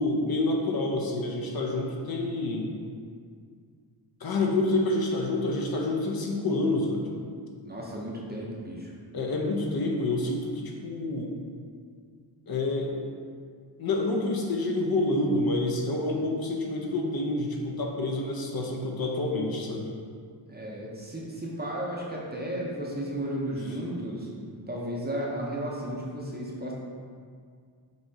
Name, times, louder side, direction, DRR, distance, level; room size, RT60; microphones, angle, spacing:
voice 1, 0.0-2.7 4.2-7.0 9.1-11.3 12.5-13.1 13.8-19.9, left 2 dB, 55° left, 0 dB, 0.6 m, -28 dB
voice 2, 7.6-8.9 20.5-24.3 24.7-26.7, right 1 dB, 20° right, -3 dB, 0.6 m, -34 dB
5.5 x 2.9 x 2.7 m, 2.1 s
wide cardioid pair, 110°, 45 cm